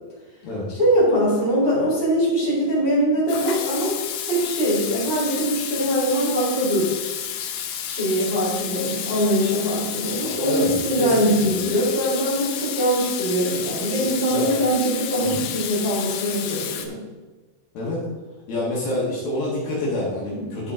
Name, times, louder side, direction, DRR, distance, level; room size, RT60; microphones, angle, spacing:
voice 1, 0.8-4.0 4.3-6.9 7.8-17.0 20.3-20.4, equal, 15° right, -8 dB, 2.2 m, -22 dB
Water tap faucet / Sink (filling or washing), 3.3-16.9, left 9 dB, 80° left, 2.4 m, -31 dB
voice 2, 10.2-11.5 14.3-14.5 15.2-15.4 17.7-18.0 18.5-20.7, left 1 dB, 60° left, -5 dB, 3.0 m, -27 dB
11.5 x 5.5 x 3.6 m, 1.2 s
omnidirectional pair, 5.3 m